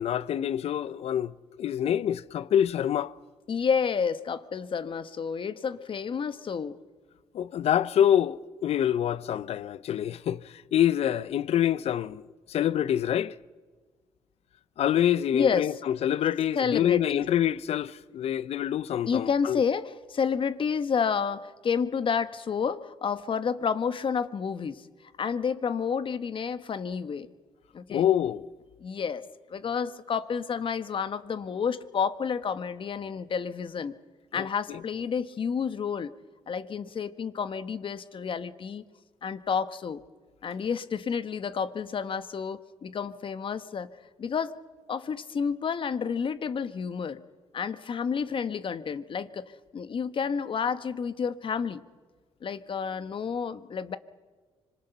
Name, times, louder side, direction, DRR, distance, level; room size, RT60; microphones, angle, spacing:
voice 1, 0.0-1.3 1.6-3.1 7.3-12.2 12.5-13.3 14.8-19.6 27.9-28.5 34.3-34.8, left 10 dB, 70° left, 0.6 m, -26 dB
voice 2, 3.5-6.8 15.3-15.7 16.5-17.2 19.1-24.9 25.2-27.3 27.7-28.1 28.8-29.2 29.5-33.9 34.3-36.1 36.5-38.8 39.2-40.0 40.4-43.9 44.2-44.5 44.9-47.2 47.5-51.8 52.4-54.0, left 6 dB, 50° left, 1.1 m, -30 dB
25.5 x 22.5 x 5.6 m
cardioid pair, 70°, 11 cm